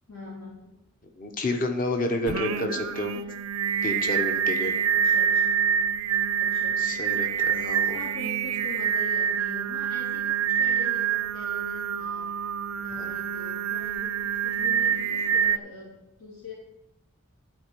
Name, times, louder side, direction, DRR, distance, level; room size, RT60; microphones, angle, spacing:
voice 1, 0.1-0.7 2.2-2.8 3.1-3.2 4.9-5.6 6.3-7.3 7.9-12.3 12.8-16.5, left 3 dB, 90° left, -7 dB, 2.6 m, -43 dB
voice 2, 1.2-3.1 3.8-4.7 6.8-8.0 13.0-13.1, left 2 dB, 40° left, 4 dB, 0.9 m, -30 dB
Singing, 2.3-15.6, right 8 dB, 85° right, 0.4 m, -26 dB
12.5 x 4.5 x 6.7 m, 0.91 s
head